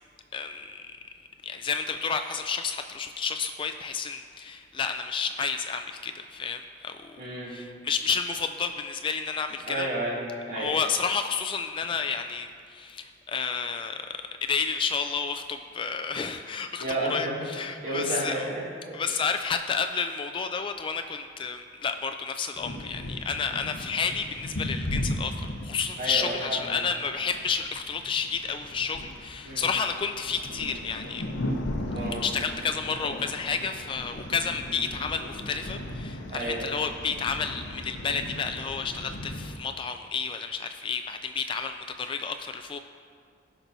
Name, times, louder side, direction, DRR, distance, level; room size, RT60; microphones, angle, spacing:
voice 1, 0.3-1.0 1.4-7.2 7.5-9.9 10.5-14.1 14.4-18.5 18.9-31.2 32.2-42.8, left 5 dB, 25° left, 7 dB, 0.3 m, -31 dB
voice 2, 7.2-7.5 9.7-10.2 10.5-10.8 16.8-17.5 17.8-19.0 26.0-26.8 29.4-29.7 31.9-32.2 36.3-36.7, right 1 dB, 55° right, -6 dB, 2.4 m, -31 dB
sound 1, 22.6-39.6, left 1 dB, 80° left, 0.8 m, -37 dB
17.5 x 6.0 x 2.7 m, 2.1 s
head